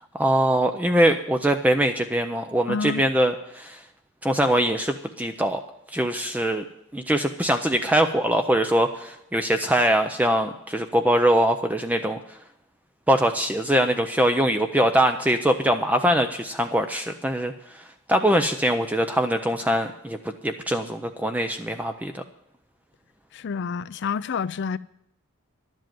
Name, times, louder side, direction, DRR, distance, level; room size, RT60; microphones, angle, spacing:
voice 1, 0.1-3.8 4.2-5.6 5.9-6.6 6.9-12.2 13.1-17.5 18.1-20.2 20.4-22.1, right 1 dB, 5° right, 0.5 m, -22 dB
voice 2, 2.7-3.0 23.3-24.8, left 6 dB, 50° left, 0.4 m, -28 dB
11.5 x 7.6 x 9.3 m
head